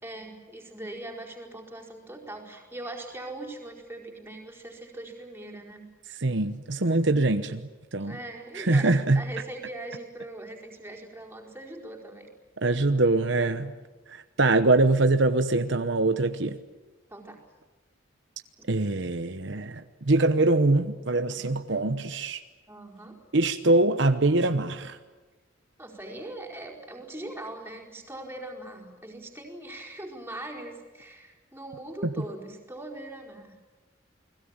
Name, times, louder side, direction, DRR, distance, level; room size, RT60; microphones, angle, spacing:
voice 1, 0.0-5.9 8.0-12.3 17.1-17.4 18.6-18.7 22.7-23.2 25.8-33.6, right 1 dB, 10° right, 1 dB, 4.7 m, -41 dB
voice 2, 6.2-8.2 8.5-9.3 12.6-13.7 14.1-16.6 18.7-22.4 23.3-25.0 32.0-32.1, right 2 dB, 65° right, 9 dB, 1.0 m, -23 dB
29.5 x 21.0 x 8.9 m, 1.2 s
head